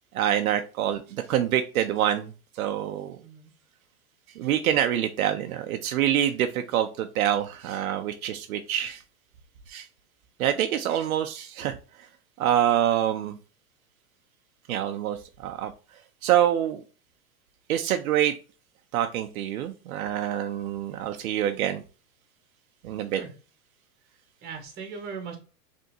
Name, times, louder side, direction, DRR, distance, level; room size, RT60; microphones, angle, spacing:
voice 1, 0.1-2.3 2.6-3.2 4.4-9.0 9.7-9.9 10.4-11.8 12.4-13.3 14.7-15.7 16.2-16.8 17.7-18.3 18.9-21.8 22.8-23.2, right 11 dB, 70° right, 7 dB, 0.7 m, -26 dB
voice 2, 3.2-3.5 23.1-23.3 24.4-25.4, right 5 dB, 20° right, 3 dB, 1.5 m, -38 dB
5.4 x 3.5 x 2.7 m, 0.35 s
supercardioid pair, 150°, 45 cm